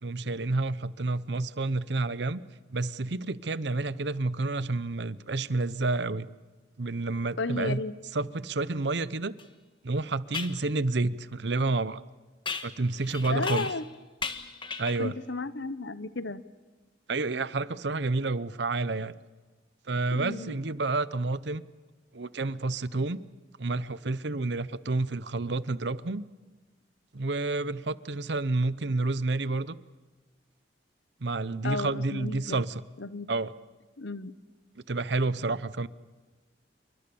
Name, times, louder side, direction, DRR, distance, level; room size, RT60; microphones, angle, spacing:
voice 1, 0.0-2.4 2.7-6.3 6.8-7.8 8.1-9.3 9.8-12.0 12.6-13.7 14.8-15.1 17.1-19.1 19.9-21.6 22.1-23.2 23.6-26.2 27.1-29.8 31.2-32.8 33.3-33.5 34.9-35.9, right 3 dB, 70° right, 16 dB, 0.8 m, -29 dB
voice 2, 7.4-7.9 13.3-13.8 15.0-16.4 20.1-20.5 31.6-32.6 33.0-33.3 34.0-34.3, left 3 dB, 80° left, 14 dB, 1.0 m, -33 dB
sound 1, 9.4-9.5 10.3-10.6 12.5-13.9 14.2-15.1, left 5 dB, 25° left, 1.3 m, -36 dB
28.5 x 23.5 x 7.1 m, 1.2 s
head